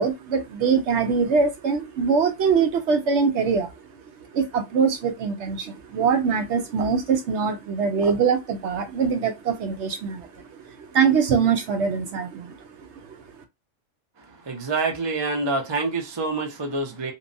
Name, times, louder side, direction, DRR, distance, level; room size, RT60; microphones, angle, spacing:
voice 1, 0.0-3.7 4.3-12.6 13.0-13.2, right 6 dB, 70° right, 0.8 m, -23 dB
voice 2, 14.4-17.1, right 3 dB, 30° right, 0.5 m, -26 dB
2.8 x 2.2 x 2.6 m
omnidirectional pair, 1.3 m